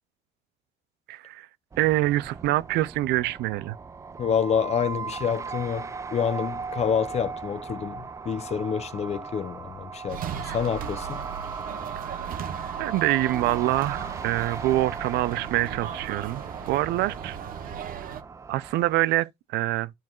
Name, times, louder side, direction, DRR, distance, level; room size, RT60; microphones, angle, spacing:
voice 1, 1.1-1.5 1.8-3.8 12.3-12.5 12.8-17.4 18.5-19.9, right 16 dB, 80° right, 0.5 m, -25 dB
sound 1, 1.7-19.0, right 5 dB, 20° right, 0.3 m, -38 dB
voice 2, 4.2-11.3, left 7 dB, 40° left, 0.7 m, -28 dB
sound 2, 10.1-18.2, right 8 dB, 55° right, 1.0 m, -37 dB
10.5 x 4.5 x 2.4 m
cardioid pair, 110°, 17 cm